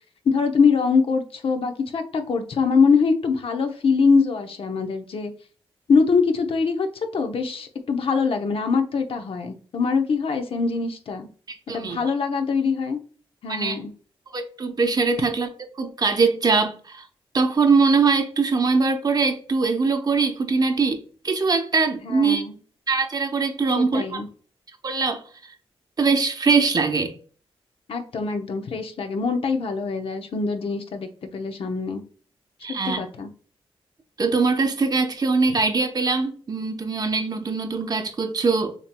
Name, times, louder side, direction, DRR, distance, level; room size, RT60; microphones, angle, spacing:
voice 1, 0.2-5.3 5.9-6.9 7.1-11.3 11.7-13.0 13.4-13.9 22.0-22.6 23.8-24.3 27.9-32.0 32.8-33.3, left 5 dB, 65° left, 0.8 m, -23 dB
voice 2, 11.5-12.0 13.5-13.8 14.3-15.5 15.8-17.0 17.3-22.4 22.9-24.2 24.8-25.2 26.0-27.1 32.6-33.0 34.2-38.7, right 4 dB, 40° right, 0.8 m, -22 dB
6.9 x 3.0 x 2.2 m
cardioid pair, 90°, 10 cm